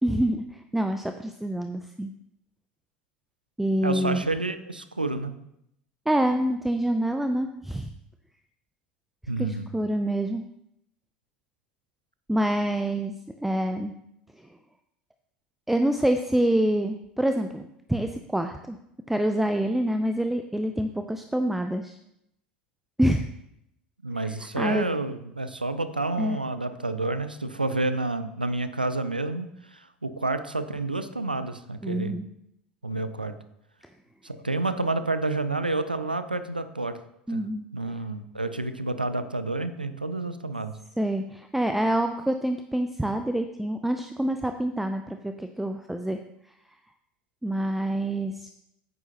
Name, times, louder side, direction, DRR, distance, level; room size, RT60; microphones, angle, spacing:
voice 1, 0.0-2.1 3.6-4.2 6.1-7.9 9.4-10.4 12.3-13.1 13.4-13.9 15.7-18.8 19.1-22.0 23.0-23.3 24.2-24.9 26.2-26.4 31.8-32.3 37.3-37.6 41.0-46.2 47.4-48.5, right 1 dB, 5° right, 7 dB, 0.5 m, -26 dB
voice 2, 3.8-5.3 9.3-9.7 24.0-32.2 32.8-33.4 34.2-37.0 37.3-37.4 37.7-40.7, right 2 dB, 90° right, 12 dB, 0.5 m, -29 dB
9.5 x 9.3 x 2.9 m, 0.78 s
figure-of-eight pair, 70°, 5 cm